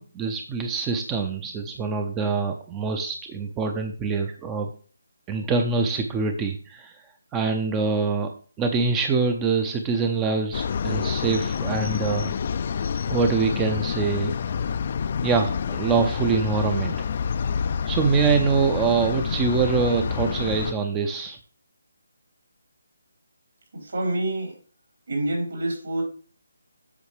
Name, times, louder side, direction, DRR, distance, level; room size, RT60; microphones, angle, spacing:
voice 1, 0.0-4.7 5.3-7.1 7.3-8.3 8.6-12.4 13.1-14.3 15.2-17.1 17.9-21.4, right 5 dB, 15° right, 5 dB, 0.5 m, -24 dB
sound 1, 10.5-20.7, left 6 dB, 40° left, 0.3 m, -28 dB
voice 2, 23.7-24.5 25.1-26.0, right 1 dB, 65° right, -1 dB, 4.4 m, -27 dB
8.2 x 6.4 x 3.2 m, 0.41 s
figure-of-eight pair, 155°, 0 cm